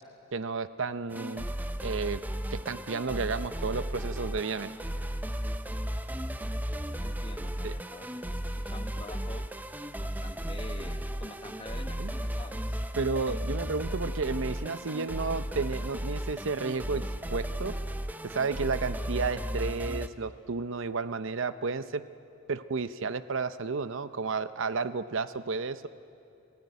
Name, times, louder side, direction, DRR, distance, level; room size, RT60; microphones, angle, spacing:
voice 1, 0.3-1.5 1.8-2.2 2.5-4.7 7.6-7.8 12.0-12.1 13.0-17.7 18.2-22.0 22.5-25.9, right 4 dB, 65° right, 13 dB, 0.7 m, -32 dB
sound 1, 1.1-20.1, equal, 10° right, 0.7 m, -35 dB
voice 2, 7.0-9.4 10.0-12.8, left 2 dB, 25° left, 8 dB, 1.1 m, -47 dB
26.5 x 16.5 x 9.4 m, 2.7 s
head